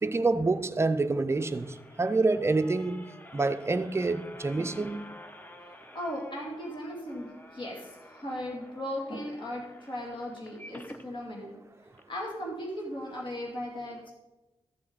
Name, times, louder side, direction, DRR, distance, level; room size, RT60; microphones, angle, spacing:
voice 1, 0.0-3.1 3.3-5.1, right 3 dB, 25° right, 0.5 m, -27 dB
sound 1, 0.9-11.1 11.6-11.7 11.9-12.0, left 1 dB, 15° left, 0.7 m, -51 dB
voice 2, 5.9-11.6 12.1-14.1, equal, 50° left, 2.6 m, -37 dB
13.5 x 7.5 x 3.9 m
wide cardioid pair, 120°, 11 cm